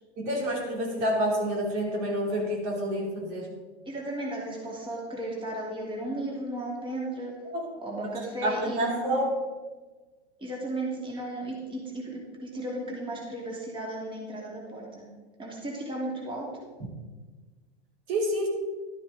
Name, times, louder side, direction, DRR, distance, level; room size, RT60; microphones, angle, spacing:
voice 1, 0.2-3.5 7.5-7.7 8.4-9.3 18.1-18.5, equal, 50° right, 0 dB, 3.1 m, -28 dB
voice 2, 3.8-7.3 7.8-9.2 10.4-15.1 15.4-16.5, right 1 dB, 15° right, -3 dB, 2.8 m, -35 dB
12.0 x 10.0 x 3.8 m, 1.3 s
hypercardioid pair, 115°, 33 cm